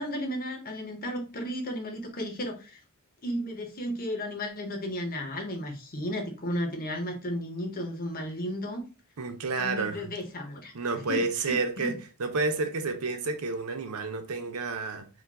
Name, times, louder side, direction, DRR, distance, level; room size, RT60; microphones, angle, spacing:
voice 1, 0.0-2.8 3.2-8.8 9.6-10.7 11.1-12.0, equal, 40° left, 1.0 m, -34 dB
voice 2, 9.2-10.1 10.7-15.1, right 3 dB, 80° right, 0.7 m, -30 dB
5.0 x 2.5 x 3.4 m
head